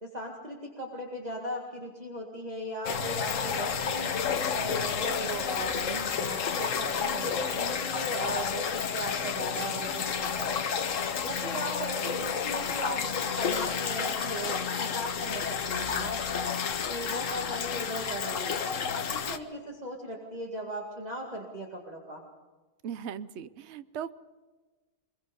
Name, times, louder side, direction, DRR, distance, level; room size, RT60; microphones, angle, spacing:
voice 1, 0.0-4.1 4.5-10.6 11.2-16.5 16.9-18.6 18.9-22.2, right 1 dB, 25° right, -1 dB, 2.2 m, -38 dB
sound 1, 2.8-19.4, left 6 dB, 55° left, 1.3 m, -31 dB
voice 2, 22.8-24.1, right 8 dB, 55° right, 14 dB, 0.9 m, -38 dB
24.5 x 22.5 x 5.4 m, 1.3 s
omnidirectional pair, 1.7 m